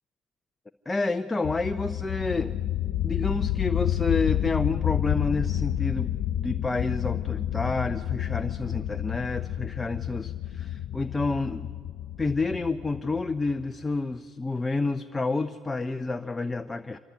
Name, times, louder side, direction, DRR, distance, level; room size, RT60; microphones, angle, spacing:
voice 1, 0.9-2.5 3.0-11.7 12.2-17.0, left 3 dB, 10° left, 8 dB, 0.6 m, -29 dB
sound 1, 1.4-13.8, left 11 dB, 50° left, 1.3 m, -30 dB
26.0 x 24.0 x 8.4 m, 2.2 s
cardioid pair, 140°, 0 cm